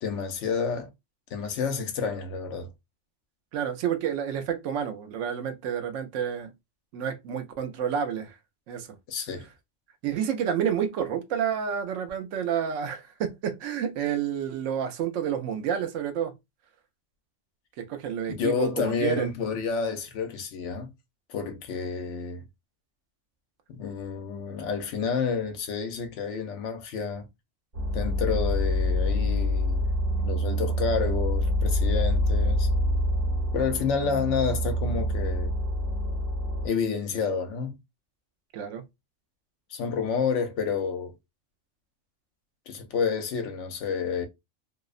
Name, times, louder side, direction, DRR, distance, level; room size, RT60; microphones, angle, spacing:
voice 1, 0.0-0.9 1.3-2.7 9.1-9.5 18.4-20.9 21.3-22.4 23.7-27.3 27.9-29.9 30.2-32.7 33.5-35.5 36.6-37.8 39.7-41.1 42.7-44.3, left 5 dB, 75° left, 0.9 m, -29 dB
voice 2, 3.5-6.5 6.9-8.3 8.7-8.9 10.0-16.3 17.8-19.3 38.5-38.8, right 8 dB, 85° right, 1.0 m, -29 dB
sound 1, 27.7-36.7, left 1 dB, 60° right, 1.4 m, -26 dB
2.7 x 2.0 x 2.4 m
omnidirectional pair, 1.3 m